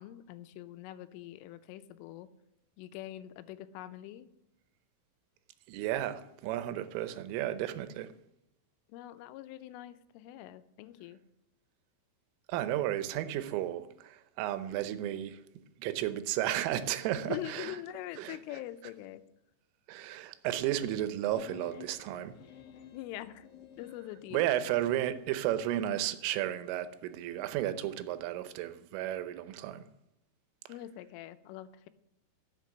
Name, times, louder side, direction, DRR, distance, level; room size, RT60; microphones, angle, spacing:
voice 1, 0.0-2.3 2.8-4.3 8.9-11.2 17.2-19.3 22.9-23.5 23.8-24.4 30.7-31.9, left 14 dB, 90° left, 3.3 m, -44 dB
voice 2, 5.7-8.1 12.5-15.4 15.8-17.8 18.2-18.4 19.9-22.4 24.3-29.9, right 12 dB, 90° right, 3.4 m, -33 dB
sound 1, 21.3-25.1, left 9 dB, 65° left, 2.0 m, -52 dB
12.5 x 7.5 x 7.8 m
omnidirectional pair, 5.6 m